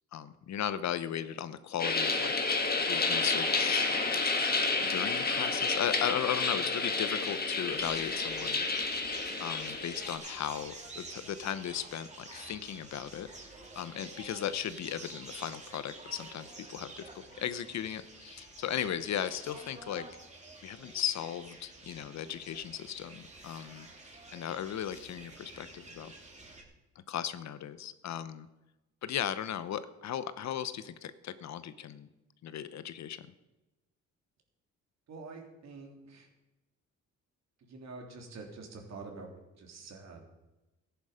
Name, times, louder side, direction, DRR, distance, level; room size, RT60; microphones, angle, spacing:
voice 1, 0.1-2.3 2.9-4.0 4.8-8.7 9.4-13.3 13.8-20.1 20.6-23.9 24.3-26.1 27.1-28.5 29.0-32.1 32.4-33.3, left 10 dB, 65° left, 14 dB, 0.9 m, -36 dB
sound 1, 1.8-10.2, left 3 dB, 30° left, 2.0 m, -30 dB
sound 2, 7.7-26.6, right 2 dB, 25° right, 2.9 m, -49 dB
voice 2, 35.1-36.3 37.7-40.2, right 3 dB, 60° right, 1 dB, 3.4 m, -46 dB
15.0 x 10.5 x 5.1 m, 1.0 s
cardioid pair, 90°, 30 cm